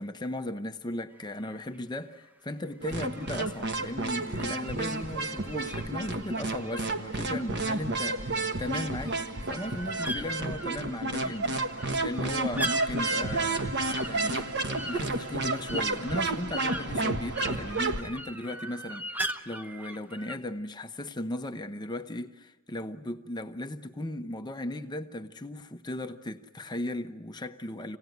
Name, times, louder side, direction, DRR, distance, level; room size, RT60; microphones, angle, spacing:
voice 1, 0.0-14.5 14.8-28.0, left 1 dB, 20° left, 0.9 m, -37 dB
sound 1, 1.1-1.8 2.8-8.1 8.4-20.4, equal, 10° right, 0.9 m, -41 dB
sound 2, 2.8-18.0, right 2 dB, 55° right, 1.3 m, -31 dB
27.0 x 18.0 x 9.3 m
head